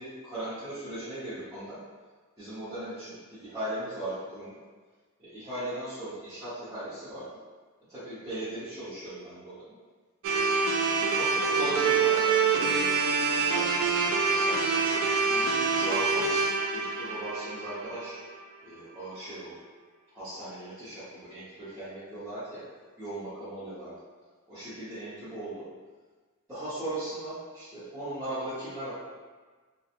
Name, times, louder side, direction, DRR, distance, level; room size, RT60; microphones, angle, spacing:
voice 1, 0.0-1.8 2.4-4.6 5.2-7.3 7.9-9.7 10.2-10.6 10.9-14.8 15.3-18.2 18.6-19.5 20.1-22.6 23.0-23.9 24.5-25.7 26.5-28.9, right 1 dB, 15° right, -17 dB, 0.9 m, -38 dB
sound 1, 10.2-18.4, right 4 dB, 70° right, 0.3 m, -26 dB
2.9 x 2.3 x 2.5 m, 1.4 s
head